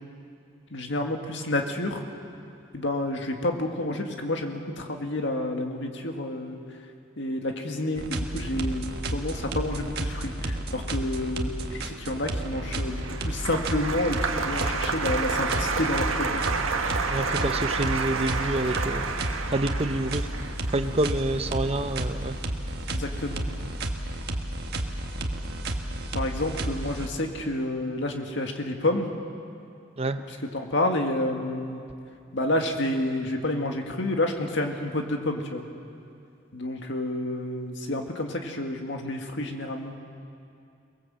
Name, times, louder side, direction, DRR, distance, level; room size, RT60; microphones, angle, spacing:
voice 1, 0.7-2.0 2.7-6.6 7.2-16.4 22.9-23.4 26.1-29.1 30.3-31.8 32.3-35.6 36.5-39.9, left 1 dB, 60° left, 3 dB, 2.0 m, -29 dB
sound 1, 8.0-27.4, right 1 dB, 50° right, 1.6 m, -32 dB
Applause, 12.5-22.9 23.1-23.7, right 4 dB, 80° right, 1.6 m, -30 dB
voice 2, 17.1-19.1 19.5-20.3 20.7-22.4 30.0-30.2, right 2 dB, 30° right, 9 dB, 0.9 m, -27 dB
23.0 x 20.0 x 7.7 m, 2.6 s
head